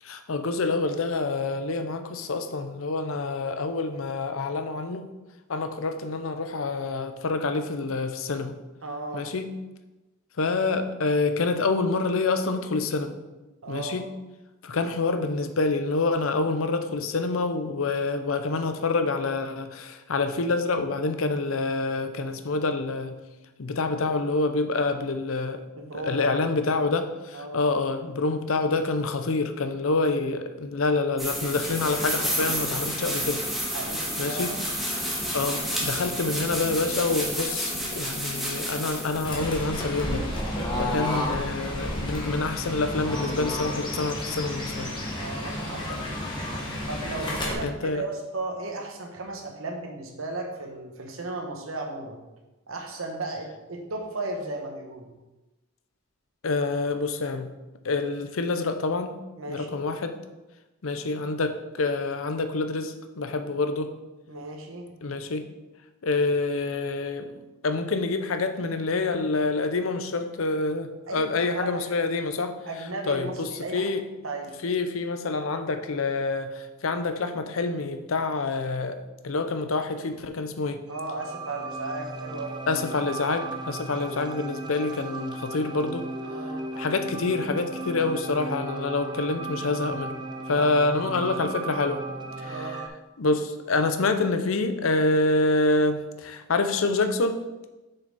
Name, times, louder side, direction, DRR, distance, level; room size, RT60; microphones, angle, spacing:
voice 1, 0.0-5.1 5.5-8.5 9.1-9.5 10.4-13.1 13.7-14.1 14.6-23.1 23.6-25.6 26.0-33.7 34.2-34.5 35.3-40.2 40.8-44.9 47.6-48.0 56.4-57.5 57.8-59.2 59.5-60.2 60.8-63.9 65.0-65.4 66.0-67.3 67.6-72.5 73.0-74.0 74.6-79.0 79.2-80.8 82.7-86.1 86.7-90.2 90.5-92.0 92.4-92.6 93.2-97.4, left 3 dB, 75° left, 8 dB, 0.7 m, -27 dB
voice 2, 8.8-9.3 13.6-14.0 25.8-26.2 27.3-27.6 33.7-34.5 45.2-46.0 46.9-52.2 52.7-55.1 59.4-59.8 64.3-64.9 71.1-72.0 72.7-73.9 74.2-74.6 80.9-82.8 86.2-86.7 90.6-90.7 92.4-92.8, right 2 dB, 75° right, 3 dB, 1.2 m, -35 dB
sound 1, 31.2-39.4, equal, ahead, 1.7 m, -30 dB
Fowl / Bird, 39.2-47.5, left 1 dB, 20° left, 1.6 m, -31 dB
sound 2, 80.9-92.9, right 2 dB, 20° right, 0.5 m, -36 dB
6.9 x 5.7 x 4.1 m, 1.1 s
head